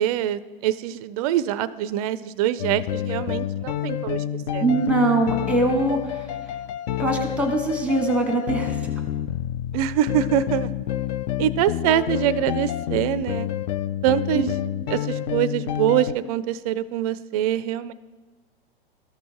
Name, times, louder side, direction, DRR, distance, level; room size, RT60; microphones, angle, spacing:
voice 1, 0.0-4.2 4.5-4.6 9.7-10.7 11.4-13.5 14.0-14.5 14.9-17.9, right 11 dB, 40° right, 16 dB, 0.4 m, -24 dB
sound 1, 2.6-16.1, left 11 dB, 45° left, 0.4 m, -28 dB
voice 2, 4.6-6.0 7.0-8.8 14.3-14.5, right 2 dB, 5° right, 5 dB, 1.1 m, -22 dB
13.5 x 6.3 x 2.9 m, 1.3 s
hypercardioid pair, 115°, 29 cm